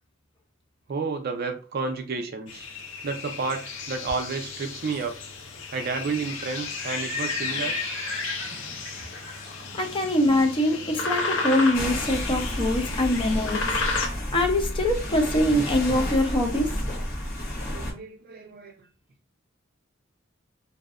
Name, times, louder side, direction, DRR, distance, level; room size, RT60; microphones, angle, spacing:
voice 1, 0.9-2.7 3.0-5.2 5.7-7.8 9.9-10.4 16.8-17.1 17.7-18.7, right 4 dB, 50° right, 0.4 m, -31 dB
sound 1, 2.5-14.1, left 3 dB, 70° left, 0.5 m, -33 dB
Livestock farm animals working animals, 6.1-12.0, left 2 dB, 90° left, 1.4 m, -37 dB
voice 2, 9.7-13.7 14.3-16.7, left 1 dB, 25° left, 0.5 m, -23 dB
sound 2, 11.7-17.9, left 1 dB, 50° left, 1.0 m, -31 dB
2.6 x 2.1 x 2.4 m
head